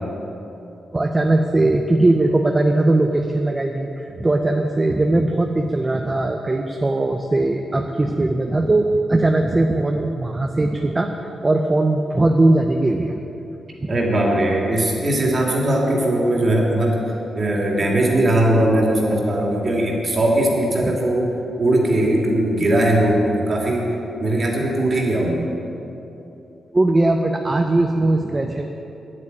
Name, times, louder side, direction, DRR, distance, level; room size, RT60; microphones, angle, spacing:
voice 1, 0.9-11.1 11.4-13.2 13.8-13.9 20.8-20.9 26.7-28.7, right 2 dB, 20° right, 3 dB, 0.6 m, -19 dB
voice 2, 13.9-17.0 17.3-23.9 24.2-25.5, right 1 dB, 35° right, -2 dB, 2.6 m, -19 dB
10.0 x 8.7 x 9.7 m, 2.9 s
wide cardioid pair, 140°, 0 cm